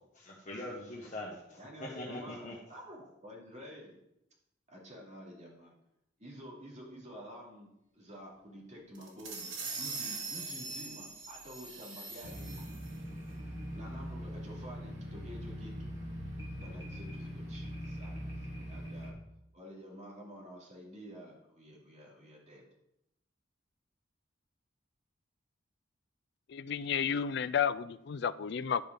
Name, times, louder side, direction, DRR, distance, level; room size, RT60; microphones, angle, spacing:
voice 1, 0.1-1.6 1.9-2.5, left 1 dB, 40° left, -3 dB, 1.5 m, -42 dB
voice 2, 1.6-4.0 4.7-5.7 6.2-7.7 7.9-9.5 9.8-12.5 13.7-15.9 16.6-19.1 19.5-22.7, equal, 35° right, -3 dB, 3.0 m, -50 dB
sound 1, 8.9-13.0, right 3 dB, 90° right, 2.5 m, -42 dB
sound 2, 12.2-19.1, equal, 65° right, 3.1 m, -42 dB
voice 3, 26.5-28.9, left 7 dB, 60° left, 16 dB, 0.4 m, -32 dB
11.5 x 5.5 x 5.3 m, 0.83 s
head